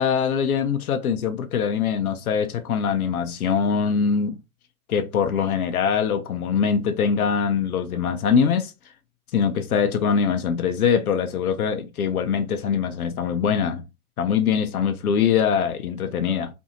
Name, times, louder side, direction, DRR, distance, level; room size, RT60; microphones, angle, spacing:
voice 1, 0.0-4.4 4.9-8.7 9.3-13.8 14.2-16.5, left 7 dB, 80° left, 0.6 m, -23 dB
2.7 x 2.6 x 2.6 m
figure-of-eight pair, 100°, 43 cm